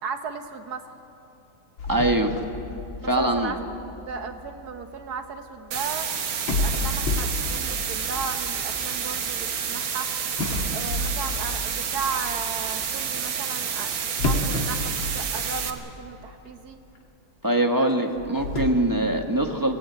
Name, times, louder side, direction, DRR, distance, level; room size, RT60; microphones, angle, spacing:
voice 1, 0.0-0.8 3.0-3.6 4.0-6.1 6.5-10.1 10.7-16.8 17.8-17.9, right 5 dB, 55° right, 7 dB, 1.6 m, -35 dB
sound 1, 1.8-4.9 5.9-6.0 6.4-9.7 10.4-12.3 14.2-16.0 16.2-16.3 17.0-17.1 18.0-18.7, left 2 dB, 90° left, 3.0 m, -30 dB
voice 2, 1.9-2.3 3.0-3.5 17.4-19.8, right 1 dB, 15° right, 4 dB, 1.0 m, -23 dB
sound 2, 5.7-15.7, right 7 dB, 80° right, 2.1 m, -29 dB
22.5 x 17.5 x 8.9 m, 2.8 s
omnidirectional pair, 2.1 m